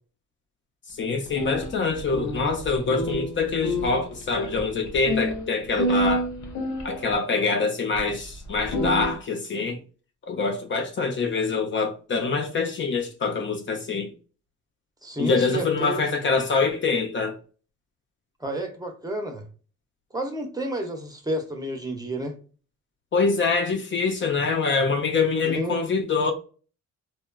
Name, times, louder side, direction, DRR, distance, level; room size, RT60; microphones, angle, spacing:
voice 1, 0.9-6.3 6.8-9.8 10.3-14.1 15.2-17.4 23.1-26.3, left 4 dB, 40° left, 0.5 m, -25 dB
sound 1, 1.3-7.1 8.0-8.1 8.5-9.1, equal, 75° left, 0.7 m, -29 dB
voice 2, 15.0-16.0 18.4-19.4 20.1-22.4 25.6-25.8, right 1 dB, 15° right, 0.6 m, -30 dB
2.8 x 2.2 x 2.2 m
cardioid pair, 90°, 30 cm